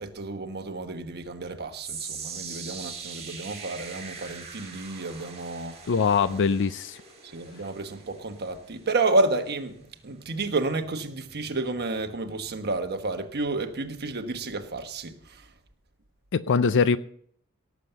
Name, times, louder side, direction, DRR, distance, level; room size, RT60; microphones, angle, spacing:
voice 1, 0.0-5.8 6.3-6.4 7.3-15.4, right 2 dB, 45° right, 1.2 m, -30 dB
sound 1, 1.8-14.1 14.4-14.8 15.4-15.5, right 5 dB, 30° right, 5.9 m, -43 dB
voice 2, 5.9-7.0 16.3-17.0, left 5 dB, 55° left, 0.5 m, -22 dB
18.0 x 7.3 x 6.8 m
head